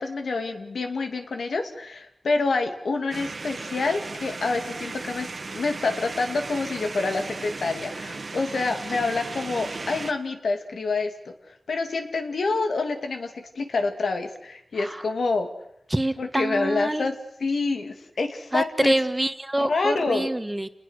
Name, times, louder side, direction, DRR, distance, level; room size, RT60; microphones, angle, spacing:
voice 1, 0.0-11.1 11.5-15.5 16.2-17.2 17.4-18.9 19.6-20.3, left 3 dB, 90° left, 5 dB, 2.6 m, -27 dB
sound 1, 3.1-10.1, right 3 dB, 60° right, 1.8 m, -36 dB
voice 2, 14.7-15.1 15.9-17.1 18.5-20.7, right 1 dB, 15° right, 10 dB, 1.6 m, -26 dB
29.0 x 20.5 x 6.5 m, 0.76 s
wide cardioid pair, 65°, 0 cm